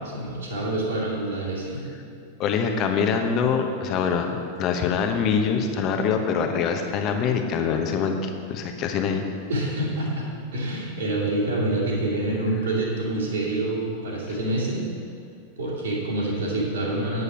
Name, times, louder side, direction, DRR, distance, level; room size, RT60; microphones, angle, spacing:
voice 1, 0.1-1.8 9.5-14.9 15.6-17.2, right 1 dB, 65° right, -4 dB, 2.4 m, -27 dB
voice 2, 2.4-9.3, left 6 dB, 35° left, 5 dB, 1.0 m, -24 dB
8.3 x 8.1 x 5.8 m, 2.4 s
figure-of-eight pair, 90°, 0 cm